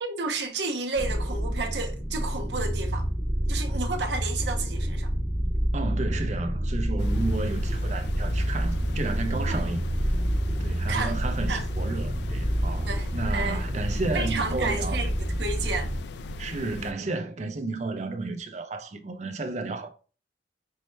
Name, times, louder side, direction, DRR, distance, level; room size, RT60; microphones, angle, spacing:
voice 1, 0.0-3.1 3.5-5.1 9.5-9.6 10.9-11.1 11.5-11.6 12.8-13.6 14.1-15.1 15.4-15.9, right 3 dB, 75° right, 0.7 m, -31 dB
sound 1, 1.0-16.0, equal, 5° left, 0.8 m, -28 dB
voice 2, 5.7-9.8 10.6-15.1 16.4-19.9, right 3 dB, 40° right, 0.6 m, -32 dB
sound 2, 7.0-16.9, left 3 dB, 70° left, 0.3 m, -39 dB
5.4 x 2.2 x 3.2 m
head